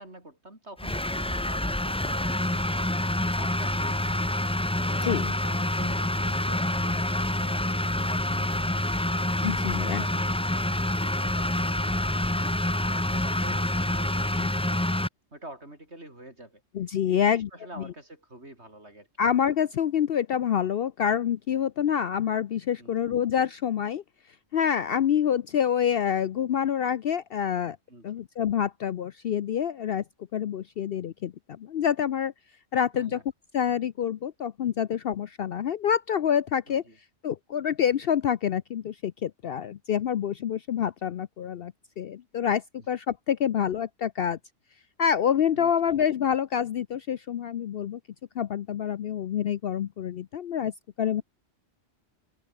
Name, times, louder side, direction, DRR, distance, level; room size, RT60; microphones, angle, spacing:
voice 1, 0.0-4.4 4.8-9.0 9.4-12.6 12.8-14.9 15.3-16.6 17.1-19.1 22.8-22.9 27.9-28.1 32.9-33.2 36.7-37.0 45.5-46.0, right 1 dB, 60° right, 7.3 m, -46 dB
sound 1, 0.8-15.1, left 1 dB, 10° left, 0.3 m, -27 dB
voice 2, 9.4-10.0 16.7-17.5 19.2-24.0 24.5-27.8 28.0-30.0 30.3-32.3 32.7-33.2 33.5-36.8 37.2-44.4 45.0-48.0 48.4-50.7 51.0-51.2, left 8 dB, 60° left, 0.7 m, -27 dB
omnidirectional pair, 1.3 m